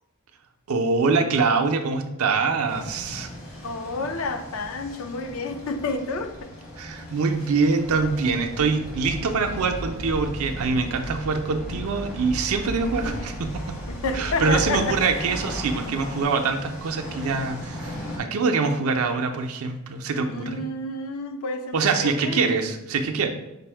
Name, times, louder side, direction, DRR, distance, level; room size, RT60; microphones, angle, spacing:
voice 1, 0.7-3.3 6.8-13.8 14.1-20.6 21.7-23.3, right 4 dB, 90° right, 5 dB, 0.5 m, -24 dB
sound 1, 2.7-18.2, equal, 60° left, 1.4 m, -38 dB
voice 2, 3.6-6.5 13.9-15.0 20.3-22.6, left 3 dB, 80° left, 6 dB, 0.5 m, -30 dB
sound 2, 7.9-16.2, right 1 dB, ahead, 0.3 m, -36 dB
5.3 x 2.0 x 4.3 m, 0.93 s
head